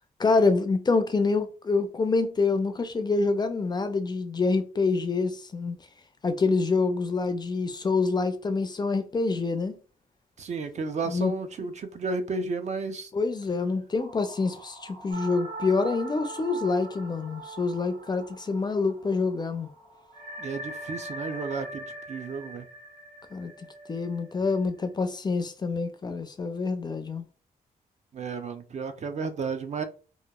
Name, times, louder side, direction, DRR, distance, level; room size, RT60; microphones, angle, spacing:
voice 1, 0.2-5.8 6.2-9.8 11.1-11.7 13.1-19.7 23.3-27.2, left 4 dB, 25° left, 0.3 m, -26 dB
voice 2, 10.4-13.1 20.4-22.7 28.1-29.8, right 4 dB, 50° right, 0.4 m, -33 dB
sound 1, 14.0-21.6, right 2 dB, 90° right, 1.4 m, -52 dB
sound 2, 15.1-19.1 19.4-19.5 20.1-24.8, right 2 dB, 70° right, 1.0 m, -41 dB
2.9 x 2.2 x 2.2 m
cardioid pair, 105°, 16 cm